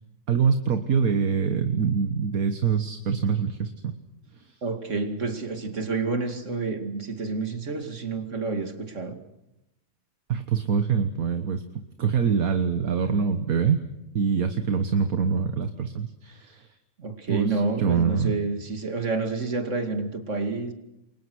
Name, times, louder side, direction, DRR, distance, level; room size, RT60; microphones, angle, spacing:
voice 1, 0.3-3.9 4.4-4.5 10.3-11.6 12.0-13.8 14.1-16.7 17.3-18.4, right 6 dB, 65° right, 8 dB, 1.7 m, -24 dB
voice 2, 4.6-9.2 17.0-20.7, right 3 dB, 50° right, 6 dB, 2.7 m, -29 dB
28.5 x 23.5 x 6.4 m, 0.89 s
omnidirectional pair, 1.6 m